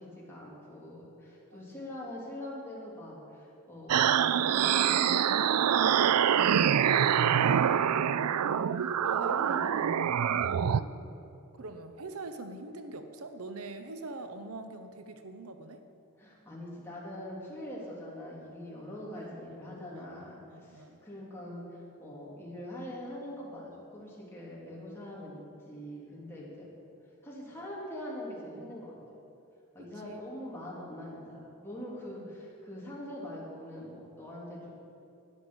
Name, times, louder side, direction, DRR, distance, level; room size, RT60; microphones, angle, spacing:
voice 1, 0.0-7.6 8.1-9.8 10.5-10.8 16.2-25.4 25.6-26.7 27.2-28.9 29.7-34.7, left 1 dB, 10° left, -6 dB, 3.0 m, -43 dB
voice 2, 1.5-2.0 9.0-9.9 11.6-15.8 19.1-19.6 19.9-21.0 29.8-30.2 32.2-32.4, right 2 dB, 70° right, 7 dB, 0.8 m, -44 dB
sound 1, 3.9-10.8, right 9 dB, 90° right, 0.4 m, -25 dB
13.0 x 10.0 x 6.3 m, 2.7 s
head